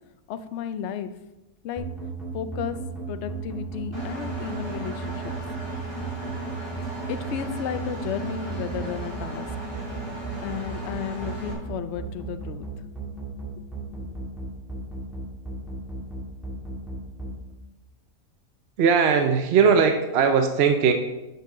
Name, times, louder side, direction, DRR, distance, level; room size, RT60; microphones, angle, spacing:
voice 1, 0.3-1.2 1.6-1.9 2.3-5.3 7.1-9.5 10.4-12.7, left 8 dB, 65° left, 11 dB, 0.7 m, -33 dB
sound 1, 1.8-17.3, right 4 dB, ahead, 2.2 m, -34 dB
Engine, 3.9-11.5, right 1 dB, 15° right, 2.3 m, -36 dB
voice 2, 18.8-20.9, right 6 dB, 60° right, 6 dB, 0.7 m, -19 dB
8.9 x 6.9 x 3.7 m, 1.0 s
omnidirectional pair, 1.6 m